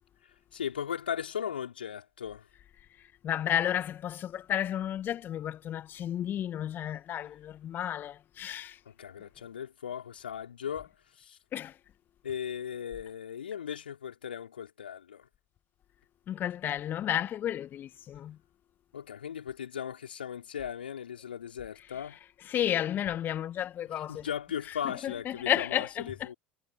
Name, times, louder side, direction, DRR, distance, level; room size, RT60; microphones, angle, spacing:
voice 1, 0.5-2.5 8.9-10.9 11.2-11.4 12.2-15.3 18.9-22.2 23.9-26.3, left 8 dB, 75° left, 4.3 m, -37 dB
voice 2, 3.2-8.8 11.5-11.7 16.3-18.4 22.5-24.2 25.0-26.3, left 11 dB, 40° left, 2.1 m, -32 dB
figure-of-eight pair, 70°, 5 cm